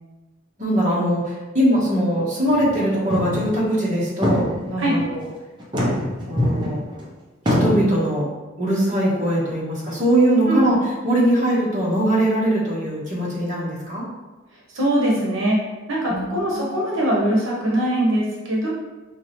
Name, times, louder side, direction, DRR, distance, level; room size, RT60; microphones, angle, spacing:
voice 1, 0.6-5.2 6.2-6.8 7.5-8.3 8.6-10.8 11.0-14.1 16.1-16.8, right 1 dB, 40° right, -7 dB, 1.2 m, -21 dB
sound 1, 2.5-2.8 3.1-3.5 3.9-4.0 4.2-5.0 5.6-7.0 7.5-7.8, left 1 dB, 20° right, 0.7 m, -22 dB
voice 2, 14.7-15.6 15.9-18.7, right 1 dB, 80° right, -4 dB, 0.9 m, -21 dB
4.8 x 2.8 x 3.1 m, 1.2 s
head